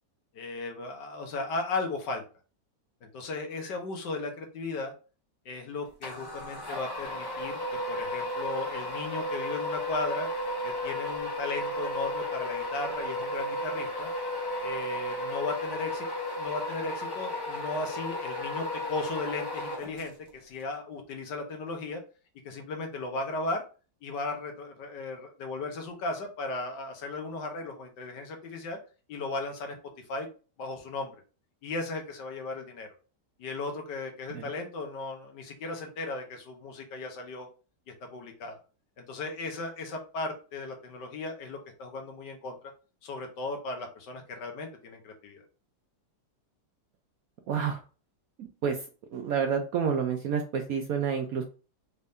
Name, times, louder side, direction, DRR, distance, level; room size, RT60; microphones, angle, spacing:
voice 1, 0.3-2.2 3.0-4.9 5.4-7.6 7.9-10.3 10.6-14.1 14.6-16.1 16.4-22.0 22.4-23.6 24.0-28.8 29.1-29.8 30.1-30.3 30.6-31.1 31.6-32.9 33.4-37.5 37.9-38.6 39.0-42.7 43.0-45.4, left 3 dB, 70° left, 4 dB, 1.5 m, -36 dB
sound 1, 6.0-20.3, left 1 dB, 25° left, 0.5 m, -34 dB
voice 2, 47.5-47.8 48.4-48.8 49.1-51.4, right 7 dB, 65° right, 4 dB, 0.9 m, -29 dB
4.3 x 2.7 x 3.5 m, 0.35 s
omnidirectional pair, 2.0 m